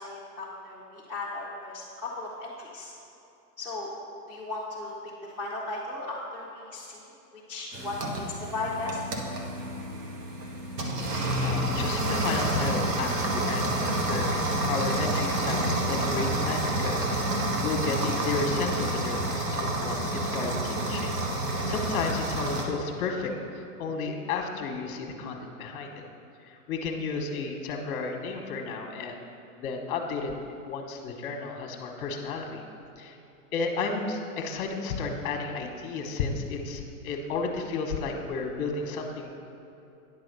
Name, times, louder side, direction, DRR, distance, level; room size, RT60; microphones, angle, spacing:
voice 1, 0.0-2.9 3.6-3.9 4.3-5.0 5.2-7.0 7.3-9.0, left 2 dB, 5° right, -9 dB, 0.5 m, -36 dB
sound 1, 7.7-22.6, right 1 dB, 85° right, 1.5 m, -29 dB
voice 2, 11.0-26.0 26.4-29.3 29.6-30.3 30.6-32.6 33.0-33.2 33.5-39.3, left 4 dB, 35° left, 3 dB, 1.1 m, -33 dB
9.9 x 4.1 x 6.7 m, 2.9 s
hypercardioid pair, 150°, 47 cm